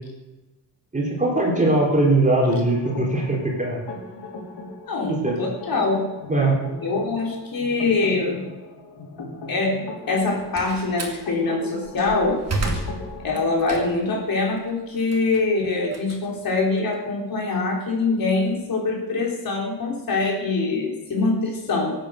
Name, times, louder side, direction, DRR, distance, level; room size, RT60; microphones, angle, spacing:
voice 1, 0.9-3.8 5.1-5.4 6.3-6.6, right 2 dB, 20° right, -2 dB, 4.0 m, -20 dB
sound 1, 2.5-13.6, left 2 dB, 85° left, 4.6 m, -38 dB
voice 2, 4.9-6.1 6.8-8.4 9.5-12.4 12.7-12.8 13.2-21.9, left 3 dB, 60° left, -1 dB, 4.0 m, -24 dB
Slam, 10.1-11.2 11.8-14.2 14.6-17.0, right 2 dB, 40° right, 2.6 m, -31 dB
24.0 x 9.1 x 6.5 m, 1.1 s
wide cardioid pair, 175°, 39 cm